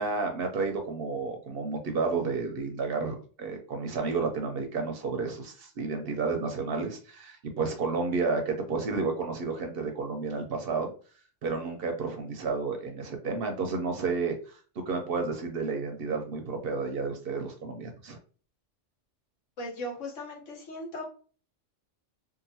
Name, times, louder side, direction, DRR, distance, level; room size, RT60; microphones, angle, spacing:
voice 1, 0.0-10.9 11.4-14.6 14.8-18.2, right 4 dB, 60° right, 4 dB, 0.7 m, -31 dB
voice 2, 19.6-21.0, left 1 dB, 80° left, 0 dB, 1.3 m, -38 dB
2.8 x 2.5 x 2.7 m, 0.40 s
omnidirectional pair, 1.2 m